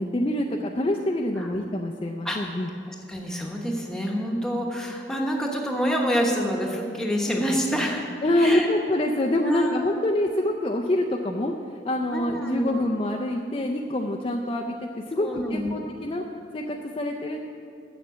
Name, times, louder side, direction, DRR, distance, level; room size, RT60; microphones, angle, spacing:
voice 1, 0.0-2.7 8.2-16.2 16.5-17.4, left 1 dB, 30° left, 1 dB, 0.4 m, -26 dB
voice 2, 2.9-8.0 8.3-8.7 9.4-10.0 12.1-12.8 15.2-15.7, equal, 5° left, -1 dB, 1.0 m, -27 dB
7.4 x 7.4 x 8.1 m, 2.4 s
head